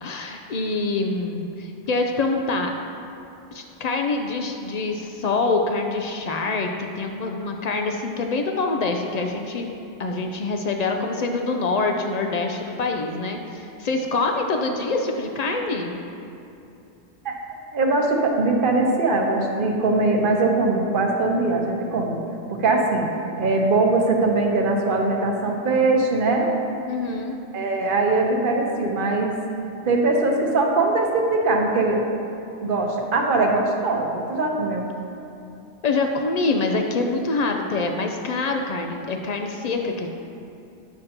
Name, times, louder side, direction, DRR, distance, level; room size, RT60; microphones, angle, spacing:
voice 1, 0.0-2.7 3.5-9.7 10.0-16.0 26.9-27.4 35.8-40.1, left 3 dB, 75° left, 3 dB, 0.3 m, -25 dB
voice 2, 17.7-22.2 22.6-23.1 23.4-26.5 27.5-29.3 29.9-32.0 32.6-34.8, right 3 dB, 50° right, 1 dB, 0.9 m, -21 dB
10.0 x 6.6 x 2.8 m, 2.8 s
omnidirectional pair, 1.2 m